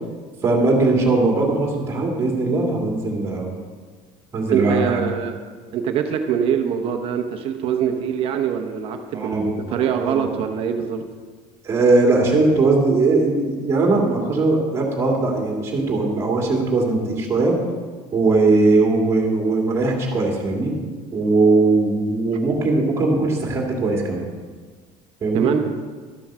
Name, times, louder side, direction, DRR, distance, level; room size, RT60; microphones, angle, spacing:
voice 1, 0.4-3.5 4.3-5.0 9.1-9.8 10.0-10.3 11.6-17.6 18.1-20.7 21.1-24.3 25.2-25.5, right 3 dB, 20° right, -1 dB, 2.2 m, -19 dB
voice 2, 4.5-5.4 5.7-11.0 25.3-25.7, right 8 dB, 40° right, 5 dB, 0.9 m, -23 dB
13.0 x 7.7 x 6.2 m, 1.5 s
cardioid pair, 180°, 14 cm